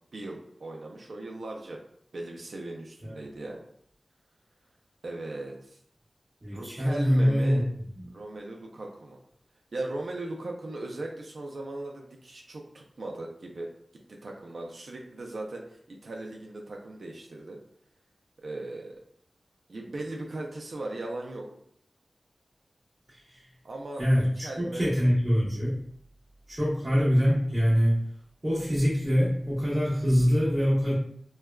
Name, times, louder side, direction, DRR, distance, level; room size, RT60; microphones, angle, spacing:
voice 1, 0.1-1.8 2.1-3.6 5.0-5.8 6.5-7.7 8.1-9.2 9.7-13.7 14.1-17.6 18.4-19.0 19.7-21.5 23.6-24.9, right 2 dB, 65° right, 0 dB, 0.4 m, -38 dB
voice 2, 6.4-7.7 8.0-8.1 23.1-23.4 24.0-25.8 26.5-28.0 28.4-30.9, equal, 30° right, -9 dB, 0.9 m, -24 dB
3.3 x 2.2 x 2.2 m, 0.68 s
wide cardioid pair, 100°, 0 cm